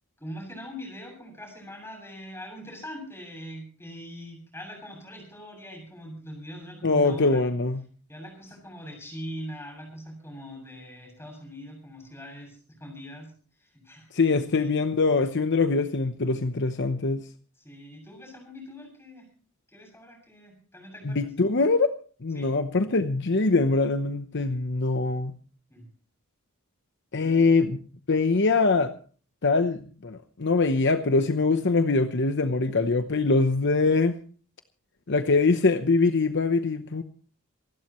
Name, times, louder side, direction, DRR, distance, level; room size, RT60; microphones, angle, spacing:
voice 1, 0.2-7.5 8.1-13.3 13.6-14.8 17.6-19.3 19.7-21.3 22.3-22.5 25.7-25.9 27.2-27.5, equal, 10° left, 2 dB, 7.5 m, -42 dB
voice 2, 6.8-7.8 14.1-17.2 21.0-21.9 22.2-25.3 27.1-27.8 28.1-28.9 29.4-34.2 35.1-37.0, left 3 dB, 55° left, 9 dB, 0.9 m, -23 dB
27.5 x 12.0 x 3.1 m, 0.42 s
head